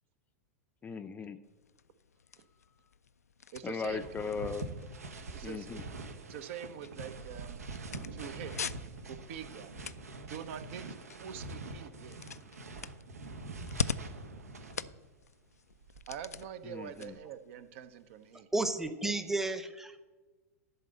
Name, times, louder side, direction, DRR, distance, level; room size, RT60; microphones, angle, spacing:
voice 1, 0.8-1.4 3.6-4.6 5.4-5.8 16.7-17.1, left 5 dB, 20° left, 10 dB, 0.5 m, -38 dB
sound 1, 1.4-18.4, left 6 dB, 85° left, 0.4 m, -45 dB
voice 2, 3.5-4.2 5.3-5.9 6.3-7.6 8.1-8.7 9.0-9.7 10.2-10.8 11.2-12.2 16.1-18.5, right 9 dB, 55° right, 11 dB, 0.8 m, -45 dB
sound 2, 3.9-15.1 15.7-17.2, right 2 dB, 80° right, 1.1 m, -45 dB
voice 3, 18.5-20.0, right 2 dB, 5° right, 11 dB, 0.8 m, -32 dB
11.5 x 4.1 x 7.8 m, 1.2 s
figure-of-eight pair, 95°, 8 cm